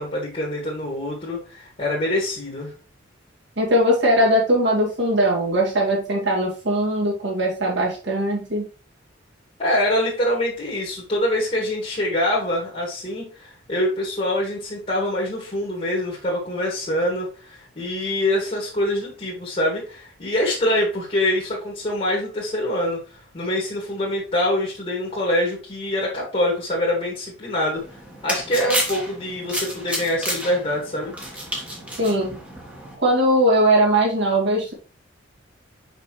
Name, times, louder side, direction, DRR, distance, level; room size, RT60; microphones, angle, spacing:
voice 1, 0.0-2.7 9.6-27.8 28.2-31.1, left 1 dB, 35° left, -3 dB, 2.0 m, -25 dB
voice 2, 3.6-8.6 32.0-32.3 33.0-34.7, right 1 dB, 65° right, -3 dB, 2.7 m, -20 dB
sound 1, 27.8-33.0, right 1 dB, 5° right, 1.5 m, -30 dB
5.8 x 5.5 x 3.1 m, 0.35 s
head